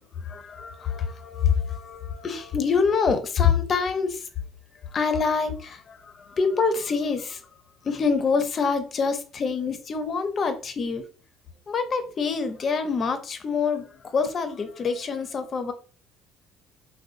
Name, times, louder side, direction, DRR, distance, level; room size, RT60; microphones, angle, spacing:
voice 1, 0.2-4.3 4.9-7.4 7.8-11.1 11.7-15.7, left 5 dB, 35° left, 9 dB, 0.5 m, -26 dB
3.8 x 2.1 x 2.5 m, 0.38 s
cardioid pair, 140°, 0 cm